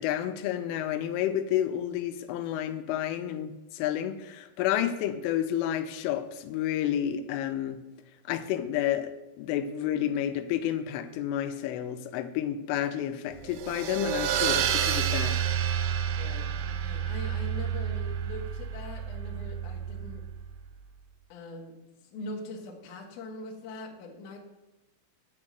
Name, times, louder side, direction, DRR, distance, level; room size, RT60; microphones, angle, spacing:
voice 1, 0.0-7.8 8.3-15.4, left 11 dB, 85° left, 9 dB, 3.1 m, -30 dB
sound 1, 13.5-20.5, right 9 dB, 80° right, 3.0 m, -30 dB
voice 2, 16.1-20.2 21.3-21.7 22.0-24.4, left 2 dB, 70° left, 0 dB, 1.9 m, -42 dB
9.8 x 4.5 x 7.4 m, 1.0 s
omnidirectional pair, 5.7 m